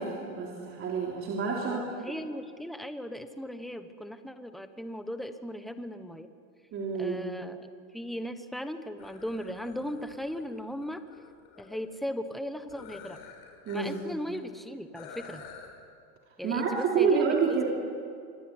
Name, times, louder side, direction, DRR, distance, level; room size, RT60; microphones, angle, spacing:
voice 1, 0.0-1.8 6.7-7.2 13.7-14.2 16.4-17.6, right 5 dB, 30° right, -2 dB, 3.5 m, -28 dB
voice 2, 1.6-6.3 7.0-11.0 11.6-13.2 13.7-15.4 16.4-17.6, equal, ahead, 9 dB, 1.1 m, -37 dB
sound 1, 9.0-11.8 12.7-14.0 14.3-14.4 14.9-15.7, left 7 dB, 50° left, 6.4 m, -49 dB
25.5 x 24.0 x 9.7 m, 2.3 s
supercardioid pair, 155°, 43 cm